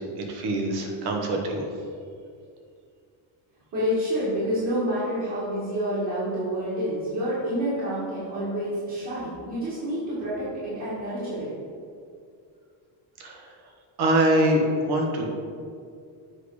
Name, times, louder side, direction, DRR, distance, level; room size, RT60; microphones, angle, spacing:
voice 1, 0.0-1.7 13.2-13.5 14.0-15.3, right 1 dB, 55° right, 2 dB, 1.3 m, -24 dB
voice 2, 3.7-11.5, equal, 35° right, -9 dB, 2.0 m, -28 dB
7.9 x 4.9 x 4.9 m, 2.3 s
cardioid pair, 175°, 46 cm